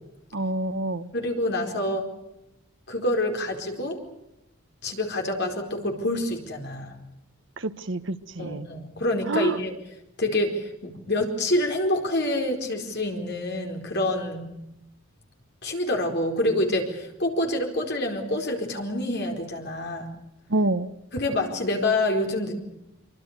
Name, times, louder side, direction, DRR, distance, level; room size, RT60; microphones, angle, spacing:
voice 1, 0.3-1.1 7.6-8.7 9.3-9.6 20.5-20.9, right 2 dB, 60° right, 13 dB, 1.2 m, -27 dB
voice 2, 1.1-2.1 2.9-4.0 4.8-6.9 8.4-9.7 10.2-14.5 15.6-20.1 21.1-22.6, left 1 dB, 50° left, 3 dB, 4.6 m, -27 dB
25.0 x 24.0 x 6.7 m, 0.87 s
head